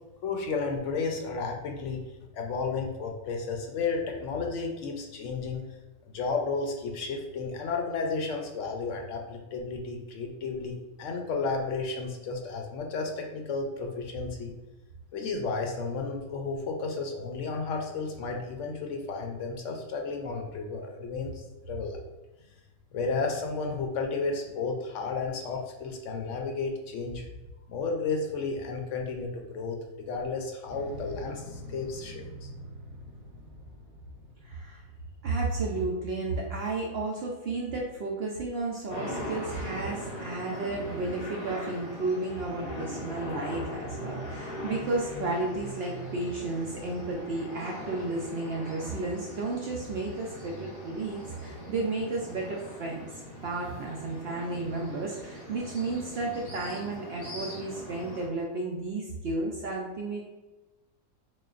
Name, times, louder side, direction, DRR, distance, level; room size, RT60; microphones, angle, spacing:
voice 1, 0.2-2.0 2.3-5.6 6.1-14.5 15.1-22.0 22.9-27.3 27.7-29.8 30.1-32.5, left 4 dB, 70° left, 2 dB, 0.8 m, -32 dB
Motorcycle, 30.7-35.9, equal, 80° right, 1.4 m, -46 dB
voice 2, 34.4-34.8 35.2-53.1 53.4-60.2, right 2 dB, 65° right, -1 dB, 0.6 m, -33 dB
sound 1, 38.9-58.3, equal, 30° left, 0.6 m, -40 dB
6.2 x 2.2 x 2.4 m, 1.1 s
omnidirectional pair, 1.5 m